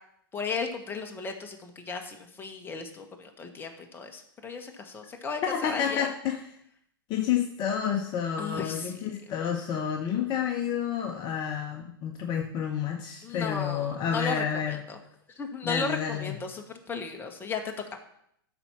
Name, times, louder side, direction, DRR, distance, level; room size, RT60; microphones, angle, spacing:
voice 1, 0.3-6.1 8.4-9.0 13.2-15.0 15.3-17.7, left 4 dB, 15° left, 4 dB, 1.3 m, -35 dB
voice 2, 5.5-6.4 7.1-14.8 15.6-16.4, left 8 dB, 35° left, 3 dB, 0.9 m, -30 dB
11.5 x 4.4 x 5.8 m, 0.73 s
hypercardioid pair, 110°, 12 cm